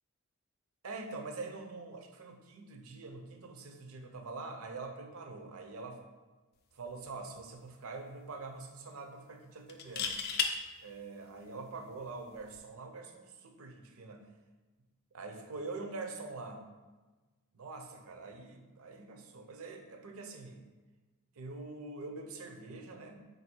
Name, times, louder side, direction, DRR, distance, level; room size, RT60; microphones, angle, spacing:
voice 1, 0.8-6.0 6.7-10.2 10.8-14.3 15.1-16.7 17.5-20.6 21.4-23.2, right 3 dB, 70° right, 4 dB, 0.5 m, -44 dB
sound 1, 6.9-7.1 7.4-7.5 9.7-10.5 12.3-12.6, left 6 dB, 45° left, 0.4 m, -33 dB
4.1 x 2.6 x 4.3 m, 1.2 s
head